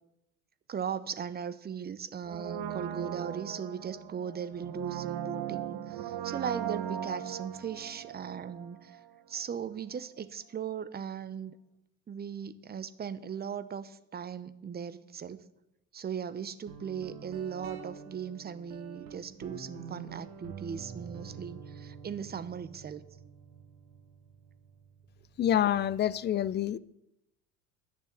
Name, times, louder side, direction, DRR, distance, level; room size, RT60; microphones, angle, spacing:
voice 1, 0.7-9.0 9.3-11.5 12.1-15.5 15.9-23.0, right 7 dB, 25° right, 14 dB, 0.8 m, -38 dB
Brass instrument, 2.2-9.1 9.4-9.5, right 11 dB, 55° right, 1.1 m, -38 dB
Guitar, 16.7-26.1, right 6 dB, 80° right, 1.7 m, -47 dB
voice 2, 25.4-26.8, left 10 dB, 25° left, 19 dB, 0.5 m, -27 dB
11.5 x 6.8 x 8.5 m, 0.87 s
hypercardioid pair, 70°, 41 cm